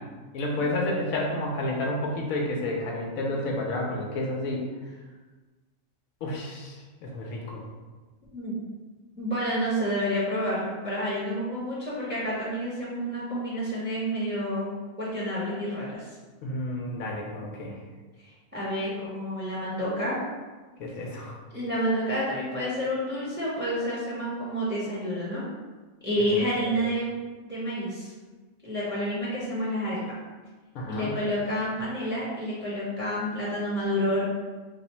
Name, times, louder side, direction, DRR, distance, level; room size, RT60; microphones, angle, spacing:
voice 1, 0.3-4.6 6.2-6.8 7.0-7.6 16.4-17.8 20.8-21.4 26.7-26.8 30.7-31.2, left 1 dB, 75° left, -1 dB, 1.0 m, -30 dB
voice 2, 9.1-14.7 15.0-16.1 18.5-20.2 21.5-25.4 26.0-27.1 27.4-28.1 28.6-30.0 30.9-34.2, equal, 10° right, -8 dB, 0.7 m, -29 dB
3.2 x 2.0 x 4.1 m, 1.3 s
omnidirectional pair, 1.5 m